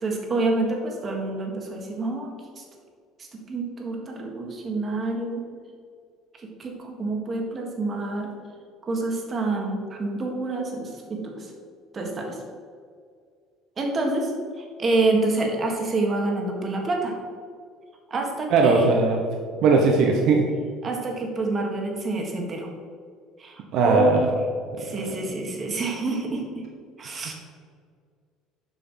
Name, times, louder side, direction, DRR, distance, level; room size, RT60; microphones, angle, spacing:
voice 1, 0.0-2.6 3.3-5.4 6.4-8.3 8.8-11.5 11.9-12.4 13.8-14.3 14.6-17.1 18.1-18.9 20.8-22.7 23.4-24.3 24.8-26.6 27.0-27.3, right 2 dB, 30° right, 1 dB, 1.8 m, -27 dB
voice 2, 18.5-19.2 19.6-20.4 23.7-24.3 24.7-25.1, right 3 dB, 65° right, 1 dB, 1.0 m, -19 dB
7.5 x 5.8 x 5.7 m, 2.1 s
cardioid pair, 125°, 0 cm